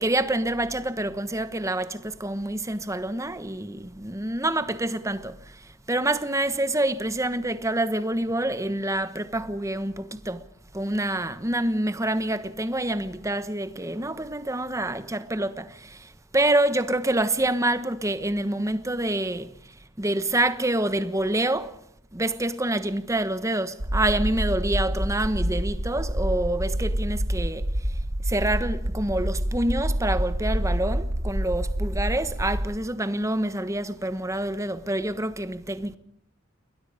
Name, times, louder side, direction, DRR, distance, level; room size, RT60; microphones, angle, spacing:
voice 1, 0.0-10.5 10.7-21.8 22.1-36.0, right 1 dB, 15° right, 1.2 m, -27 dB
sound 1, 23.8-32.6, right 1 dB, 60° right, 1.9 m, -27 dB
29.5 x 22.0 x 5.2 m
head